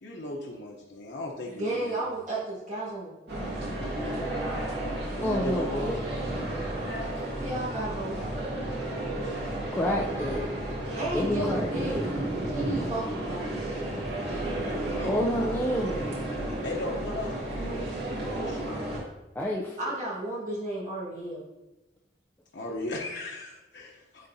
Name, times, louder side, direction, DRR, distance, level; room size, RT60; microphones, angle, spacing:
voice 1, 0.0-2.1 5.2-5.9 9.1-9.7 14.3-15.8 16.6-18.8 22.5-24.3, left 2 dB, 85° left, -2 dB, 0.9 m, -37 dB
voice 2, 1.6-3.1 7.4-8.2 10.9-12.1 12.4-13.5 19.8-21.4, right 1 dB, 45° right, -8 dB, 1.7 m, -33 dB
sound 1, 3.3-19.0, right 1 dB, 70° right, 2.2 m, -32 dB
voice 3, 5.2-6.0 9.7-10.6 11.1-12.0 15.0-16.0 19.4-19.8, equal, 10° left, -3 dB, 0.5 m, -29 dB
10.5 x 3.9 x 2.8 m, 0.99 s
head